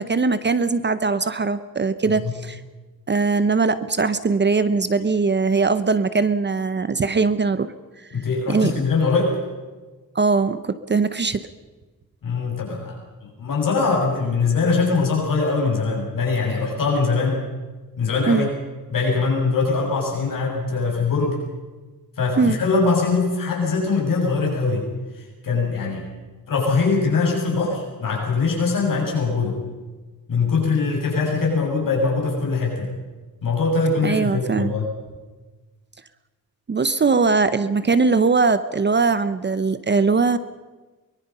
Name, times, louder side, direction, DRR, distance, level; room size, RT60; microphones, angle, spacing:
voice 1, 0.0-2.6 3.1-7.7 8.1-8.7 10.1-11.4 18.3-18.5 22.4-22.6 34.0-34.7 36.7-40.4, right 4 dB, 30° right, 13 dB, 0.8 m, -21 dB
voice 2, 8.1-9.4 12.2-13.0 13.4-17.4 18.0-18.5 18.9-21.4 22.2-24.9 25.1-26.1 26.5-29.6 30.3-32.9 33.4-34.9, left 4 dB, 65° left, -1 dB, 6.6 m, -22 dB
24.0 x 22.0 x 5.5 m, 1.3 s
wide cardioid pair, 160°, 35 cm